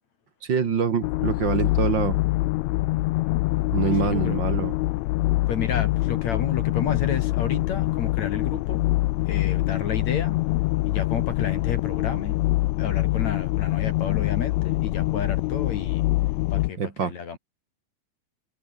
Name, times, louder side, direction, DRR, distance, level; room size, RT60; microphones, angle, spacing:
voice 1, 0.4-2.2 3.7-4.7 16.8-17.1, right 6 dB, 40° right, 2.0 m, -25 dB
sound 1, 1.0-16.7, left 19 dB, 80° left, 1.6 m, -24 dB
voice 2, 3.8-4.4 5.5-8.8 9.3-10.4 10.9-12.4 12.8-16.1 16.5-17.4, left 6 dB, 60° left, 4.1 m, -32 dB
omnidirectional pair, 3.7 m